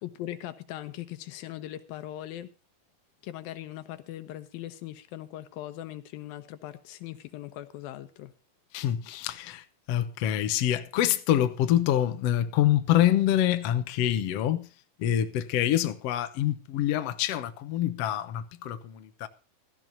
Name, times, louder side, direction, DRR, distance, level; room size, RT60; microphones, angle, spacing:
voice 1, 0.0-2.5 3.2-8.3, left 13 dB, 85° left, 2.8 m, -40 dB
voice 2, 8.7-14.7 15.0-19.3, left 12 dB, 65° left, 1.5 m, -26 dB
16.5 x 14.0 x 2.7 m
omnidirectional pair, 4.1 m